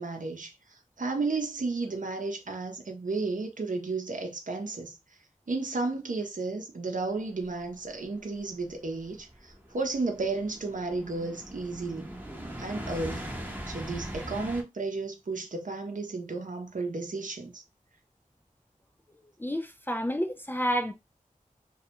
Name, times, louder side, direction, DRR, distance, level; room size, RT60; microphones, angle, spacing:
voice 1, 0.0-5.0 5.5-12.1 12.6-13.3 13.7-17.6, right 3 dB, 65° right, 0.7 m, -33 dB
sound 1, 7.6-14.6, equal, 15° right, 0.7 m, -41 dB
voice 2, 19.4-20.9, equal, 15° left, 0.3 m, -29 dB
2.3 x 2.1 x 2.8 m
wide cardioid pair, 45°, 14 cm